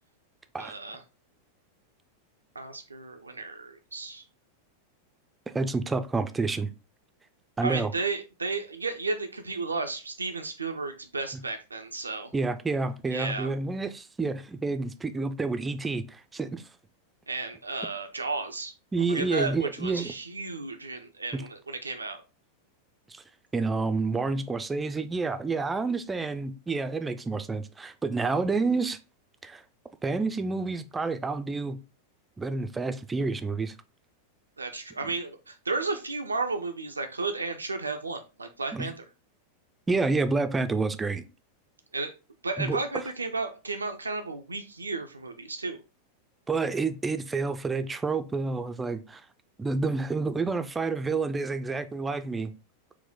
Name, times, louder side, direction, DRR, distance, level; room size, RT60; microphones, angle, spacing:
voice 1, 0.6-1.0 2.6-4.2 7.6-12.3 13.1-13.5 17.3-18.7 19.1-22.2 34.6-39.0 41.9-42.1 42.4-45.8, right 3 dB, 80° right, 0.4 m, -33 dB
voice 2, 5.5-6.7 7.6-7.9 12.3-16.6 18.9-20.1 21.3-21.4 23.1-23.2 23.5-29.0 29.4-29.6 30.0-31.8 32.4-33.7 38.7-38.9 39.9-41.2 42.6-42.8 46.5-49.2 49.6-52.5, right 3 dB, 15° right, 0.4 m, -29 dB
4.5 x 2.1 x 3.5 m
figure-of-eight pair, 90°, 0 cm